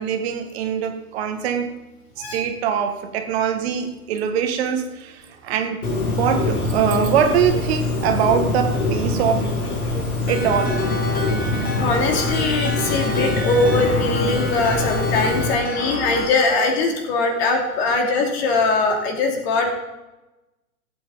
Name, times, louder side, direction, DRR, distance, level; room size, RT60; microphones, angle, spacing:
voice 1, 0.0-1.7 2.2-9.5 10.3-10.8, right 8 dB, 45° right, 6 dB, 1.5 m, -23 dB
Bird, 5.8-15.5, left 2 dB, 75° left, 3.1 m, -24 dB
sound 1, 10.3-16.3, left 1 dB, 20° left, 2.1 m, -29 dB
voice 2, 11.6-19.7, left 3 dB, 45° left, 3 dB, 2.8 m, -21 dB
17.0 x 8.5 x 3.9 m, 1.0 s
figure-of-eight pair, 110°, 44 cm